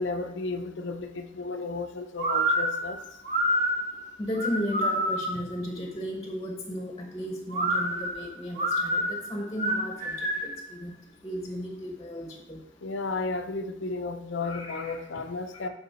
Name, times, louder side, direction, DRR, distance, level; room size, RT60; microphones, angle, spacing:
voice 1, 0.0-3.0 12.8-15.7, left 3 dB, 85° left, 7 dB, 0.6 m, -33 dB
sound 1, 2.2-5.5 7.5-10.6, equal, 40° right, 1.2 m, -27 dB
voice 2, 4.2-10.9 11.2-12.6 14.4-15.0 15.6-15.7, equal, 20° left, 2 dB, 0.8 m, -35 dB
9.3 x 3.8 x 4.2 m, 0.83 s
head